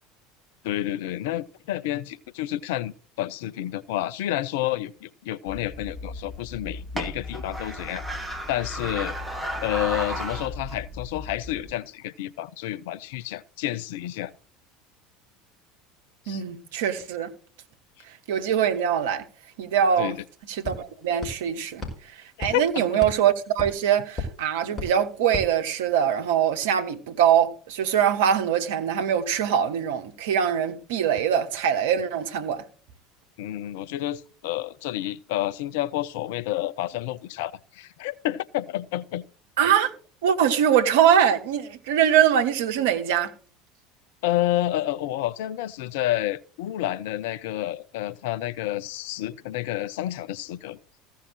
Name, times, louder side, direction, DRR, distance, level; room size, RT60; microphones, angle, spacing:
voice 1, 0.6-8.0 8.5-9.1 9.6-14.3 16.3-16.4 20.0-20.2 22.5-23.0 33.4-39.2 44.2-50.8, left 14 dB, 60° left, 0.5 m, -29 dB
sound 1, 5.5-11.7, equal, 5° right, 2.5 m, -34 dB
voice 2, 16.3-17.3 18.3-19.2 19.6-20.1 20.5-21.8 22.4-32.6 39.6-39.9 40.2-43.3, right 9 dB, 60° right, 1.1 m, -23 dB
sound 2, 19.5-19.6 19.9-26.3, left 2 dB, 25° left, 4.9 m, -38 dB
15.0 x 5.6 x 6.5 m
figure-of-eight pair, 70°, 0 cm